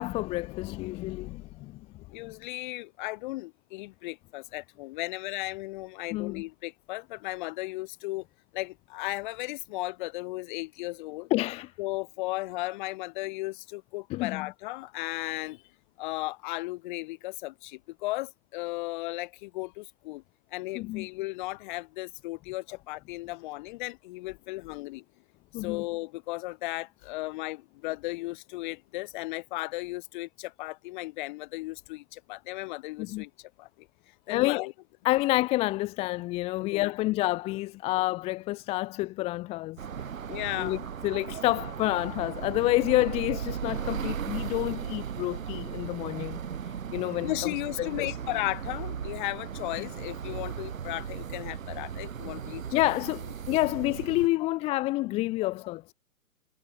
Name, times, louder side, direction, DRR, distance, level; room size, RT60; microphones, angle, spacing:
voice 1, 0.0-1.8 6.1-6.4 11.3-11.7 14.1-14.5 20.7-21.1 25.5-25.8 33.0-33.2 34.3-34.6 35.0-39.8 40.6-48.1 49.8-49.9 52.7-55.9, left 18 dB, 15° left, 0.8 m, -29 dB
voice 2, 2.1-8.3 8.5-11.3 11.8-15.6 16.0-20.2 20.5-25.0 25.6-33.9 34.3-34.7 36.6-36.9 40.3-40.8 47.2-52.8 54.4-54.6, left 20 dB, 35° left, 4.1 m, -35 dB
sound 1, 39.8-54.3, right 8 dB, 65° right, 2.5 m, -37 dB
hypercardioid pair, 140°, 42 cm